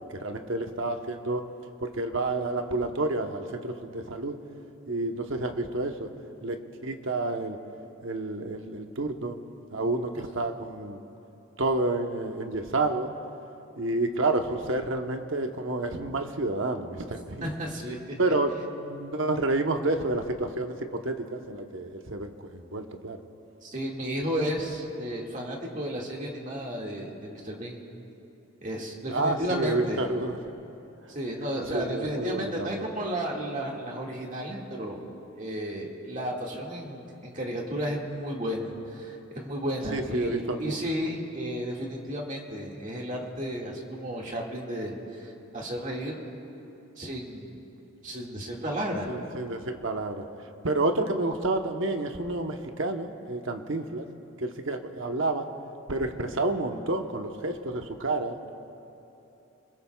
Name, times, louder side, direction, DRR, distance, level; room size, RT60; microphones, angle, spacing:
voice 1, 0.1-1.4 1.8-4.4 4.9-6.1 6.4-6.6 6.8-7.6 8.0-9.4 9.7-11.0 11.6-13.1 13.8-17.5 18.2-23.2 29.1-30.4 31.7-32.9 39.9-40.8 49.1-50.3 50.6-54.1 54.4-55.5 55.9-58.5, right 2 dB, 65° right, 5 dB, 1.0 m, -29 dB
voice 2, 17.4-18.0 23.6-27.8 28.6-30.1 31.1-35.0 35.4-46.2 47.0-47.6 48.0-49.1, equal, 35° right, -1 dB, 2.0 m, -33 dB
26.0 x 21.0 x 2.3 m, 3.0 s
head